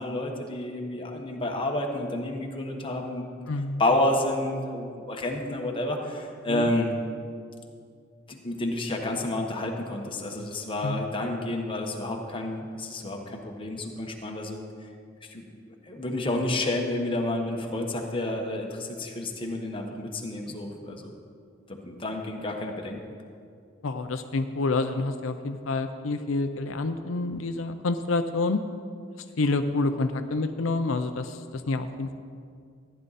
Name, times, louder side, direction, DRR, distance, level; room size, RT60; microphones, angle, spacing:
voice 1, 0.0-3.2 3.8-6.9 8.3-14.6 15.3-21.1 21.8-23.0, left 1 dB, 25° left, 1 dB, 1.3 m, -30 dB
voice 2, 3.5-3.8 6.5-6.7 10.8-11.0 23.8-28.6 29.4-32.1, left 3 dB, 85° left, 8 dB, 0.6 m, -28 dB
14.5 x 10.5 x 4.1 m, 2.2 s
head